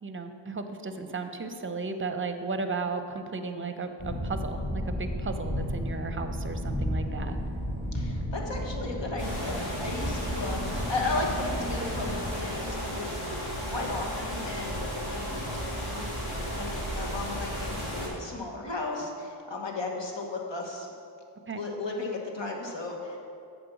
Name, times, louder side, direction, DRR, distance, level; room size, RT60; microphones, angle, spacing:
voice 1, 0.0-7.4 21.5-21.6, right 4 dB, 25° right, 8 dB, 0.7 m, -35 dB
sound 1, 4.0-12.3, equal, 20° left, 1.6 m, -33 dB
voice 2, 7.9-16.1 16.5-20.9 21.6-23.2, left 2 dB, 60° left, 1 dB, 1.4 m, -35 dB
sound 2, 9.2-18.1, equal, 80° left, 2.1 m, -34 dB
7.6 x 4.4 x 7.0 m, 2.5 s
cardioid pair, 45°, 49 cm